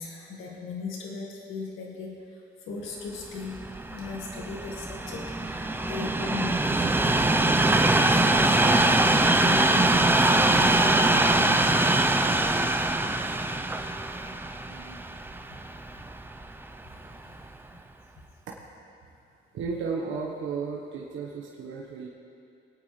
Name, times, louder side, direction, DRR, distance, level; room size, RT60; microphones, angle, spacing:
voice 1, 0.0-3.6 3.9-11.8 14.7-15.1 16.8-17.5, left 4 dB, 85° left, -1 dB, 1.8 m, -38 dB
Train, 3.4-16.6 17.3-17.5, right 2 dB, 10° right, 0.7 m, -23 dB
voice 2, 19.5-22.1, right 5 dB, 80° right, -2 dB, 1.3 m, -33 dB
23.5 x 9.0 x 3.3 m, 2.6 s
cardioid pair, 90°, 20 cm